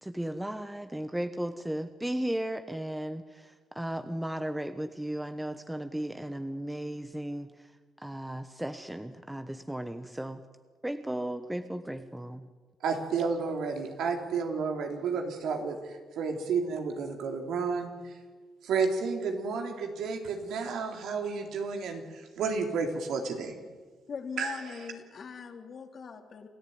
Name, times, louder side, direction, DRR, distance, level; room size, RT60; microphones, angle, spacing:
voice 1, 0.0-7.7 8.0-10.4 10.8-12.5, right 1 dB, 5° right, 9 dB, 1.1 m, -35 dB
voice 2, 12.8-18.1 18.6-23.5 24.4-24.6, right 5 dB, 80° right, 4 dB, 3.6 m, -31 dB
voice 3, 24.1-26.5, left 6 dB, 50° left, 5 dB, 2.9 m, -41 dB
28.5 x 14.0 x 9.5 m, 1.4 s
cardioid pair, 90°, 0 cm